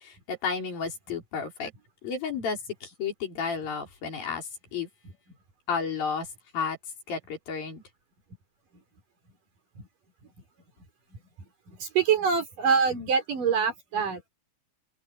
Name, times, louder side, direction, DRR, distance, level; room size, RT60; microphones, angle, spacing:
voice 1, 0.0-1.7 2.0-4.9 5.7-6.3 6.5-6.8 7.1-7.8, left 5 dB, 65° left, 6.4 m, -32 dB
voice 2, 11.8-14.2, right 6 dB, 55° right, 6.2 m, -25 dB
open air
omnidirectional pair, 4.4 m